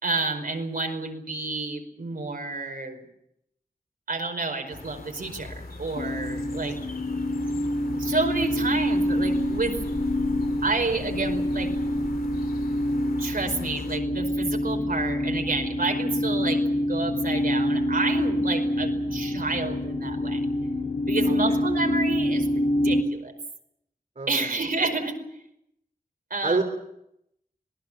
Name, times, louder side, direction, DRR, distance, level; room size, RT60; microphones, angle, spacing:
voice 1, 0.0-3.0 4.1-6.8 8.0-9.8 10.6-11.7 13.2-20.4 21.1-22.5 22.8-23.3 24.3-25.2 26.3-26.6, right 3 dB, 75° right, 3 dB, 5.1 m, -29 dB
sound 1, 4.7-14.0, left 3 dB, 90° left, 2.5 m, -44 dB
sound 2, 5.4-15.7, left 1 dB, 40° left, 6.2 m, -41 dB
sound 3, 5.9-23.0, left 1 dB, 65° left, 3.1 m, -26 dB
voice 2, 21.2-21.6 24.2-24.7 26.4-26.6, right 3 dB, 55° right, 3 dB, 3.4 m, -29 dB
26.5 x 19.0 x 7.5 m, 0.79 s
wide cardioid pair, 70°, 15 cm